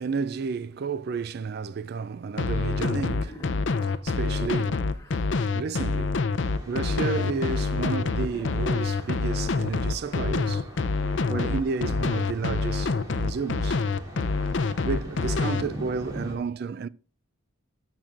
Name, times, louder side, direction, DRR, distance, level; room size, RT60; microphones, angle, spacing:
voice 1, 0.0-3.4 3.8-5.0 5.5-6.2 6.7-10.7 11.0-13.8 14.8-16.9, right 5 dB, 50° right, 0.3 m, -31 dB
sound 1, 2.4-15.6, left 4 dB, 60° left, 0.5 m, -26 dB
Wild animals, 2.7-5.2 6.7-9.2, left 1 dB, 15° left, 0.9 m, -45 dB
Thunder, 6.3-16.3, equal, 20° right, 2.6 m, -43 dB
13.5 x 6.0 x 2.5 m
head